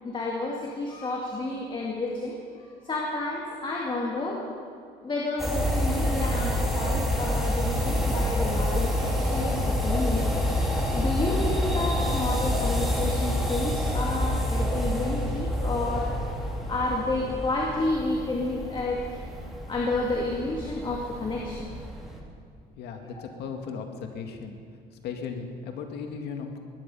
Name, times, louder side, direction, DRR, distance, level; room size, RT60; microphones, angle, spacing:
voice 1, 0.0-4.4 5.0-10.3 10.9-16.1 16.7-19.2 19.7-21.7 23.0-23.1, left 2 dB, 30° left, -2 dB, 2.3 m, -30 dB
sound 1, 5.4-22.2, equal, ahead, 2.8 m, -28 dB
voice 2, 22.8-24.6 24.9-26.6, left 5 dB, 75° left, 4 dB, 2.0 m, -36 dB
21.0 x 10.5 x 5.6 m, 2.2 s
cardioid pair, 110°, 17 cm